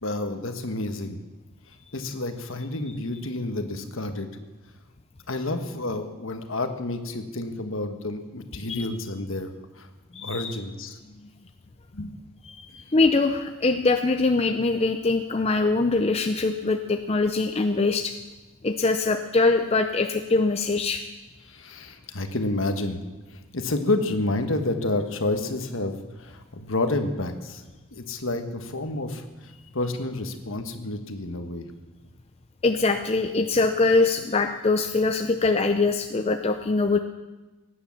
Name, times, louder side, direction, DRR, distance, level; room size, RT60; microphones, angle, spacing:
voice 1, 0.0-1.2 1.9-4.3 5.3-9.9 10.2-11.0 11.9-12.1 21.5-23.0 23.3-27.6 27.9-31.7, left 2 dB, 60° left, 7 dB, 1.4 m, -29 dB
voice 2, 10.1-10.5 12.4-18.1 18.6-21.0 32.6-37.0, left 3 dB, 25° left, 6 dB, 0.5 m, -23 dB
17.0 x 9.8 x 7.2 m, 1.2 s
head